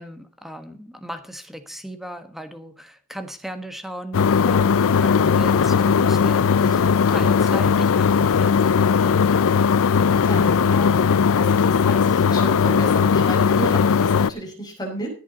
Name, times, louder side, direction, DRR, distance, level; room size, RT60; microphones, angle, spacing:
voice 1, 0.0-4.7 5.0-6.7 7.1-9.5, equal, ahead, 8 dB, 1.4 m, -36 dB
sound 1, 4.1-14.3, left 6 dB, 65° left, 0.5 m, -18 dB
Aircraft, 4.7-10.5, right 1 dB, 25° right, 4.8 m, -46 dB
voice 2, 6.6-7.4 10.2-15.1, equal, 20° left, 0 dB, 5.5 m, -33 dB
16.5 x 8.5 x 4.0 m, 0.39 s
head